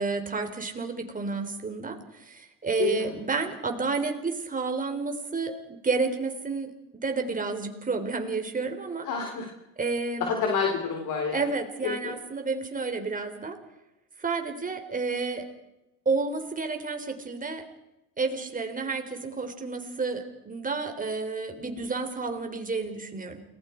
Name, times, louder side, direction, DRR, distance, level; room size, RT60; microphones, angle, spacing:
voice 1, 0.0-9.1 9.8-10.3 11.3-13.6 14.2-15.4 16.1-17.6 18.2-23.4, right 4 dB, 25° right, 5 dB, 3.8 m, -30 dB
voice 2, 2.8-3.1 9.0-9.5 10.2-11.5 11.8-12.1, left 5 dB, 65° left, 1 dB, 4.0 m, -28 dB
29.5 x 20.0 x 4.6 m, 0.94 s
cardioid pair, 110°, 33 cm